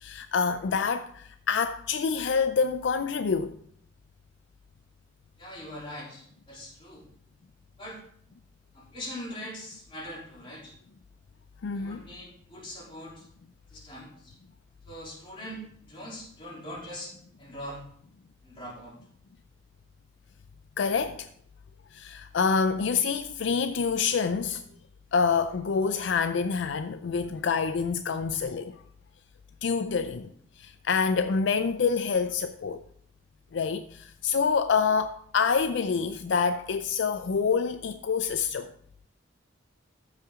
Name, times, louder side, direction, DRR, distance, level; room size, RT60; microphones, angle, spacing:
voice 1, 0.0-3.5 11.6-12.1 20.8-21.3 21.9-24.6 25.1-28.8 29.6-30.3 30.6-32.8 33.5-38.7, left 5 dB, 70° left, 0.4 m, -27 dB
voice 2, 5.4-7.1 7.8-8.0 8.7-10.7 11.7-13.3 13.7-14.3 14.8-17.1 17.4-17.8 18.4-18.9, equal, 30° left, 3.2 m, -42 dB
13.5 x 5.8 x 3.6 m
head